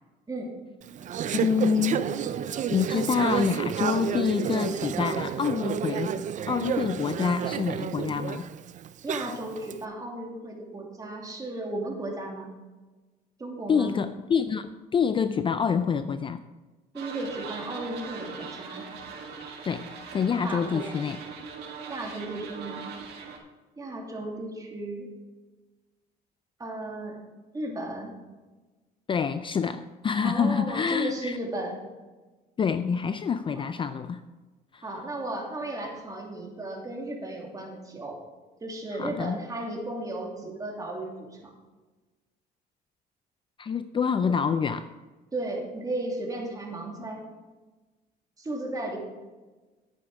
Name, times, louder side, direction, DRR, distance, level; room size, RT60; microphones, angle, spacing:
Conversation / Chatter, 0.8-9.7, right 8 dB, 45° right, 0.5 m, -30 dB
voice 1, 1.3-2.3 2.7-6.2 6.5-8.5 13.7-16.4 19.6-19.9 20.1-21.2 29.1-31.4 32.6-34.2 34.7-34.8 39.0-39.4 43.6-44.9, left 6 dB, 30° left, 11 dB, 0.4 m, -27 dB
voice 2, 9.0-12.5 13.4-13.9 16.9-18.9 20.4-20.9 21.9-22.8 23.8-25.1 26.6-27.2 27.5-28.1 30.2-31.8 33.5-33.6 34.8-38.2 38.6-41.5 45.3-47.2 48.4-49.0, right 2 dB, 20° right, 0 dB, 2.7 m, -35 dB
sound 1, 17.0-23.4, right 5 dB, 75° right, 1.9 m, -40 dB
10.5 x 8.8 x 4.8 m, 1.2 s
cardioid pair, 110°, 17 cm